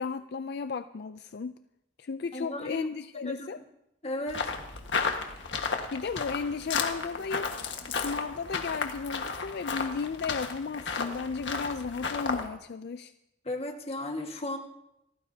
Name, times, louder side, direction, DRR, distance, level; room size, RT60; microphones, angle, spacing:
voice 1, 0.0-1.6 2.0-3.6 5.9-7.6 7.9-13.1, left 5 dB, 60° left, 11 dB, 0.4 m, -34 dB
voice 2, 2.3-2.9 3.2-3.5 4.0-4.5 13.4-14.6, left 1 dB, 35° left, 3 dB, 1.6 m, -35 dB
sound 1, 4.3-12.5, left 4 dB, 85° left, 1.6 m, -33 dB
27.5 x 14.5 x 2.8 m, 0.85 s
head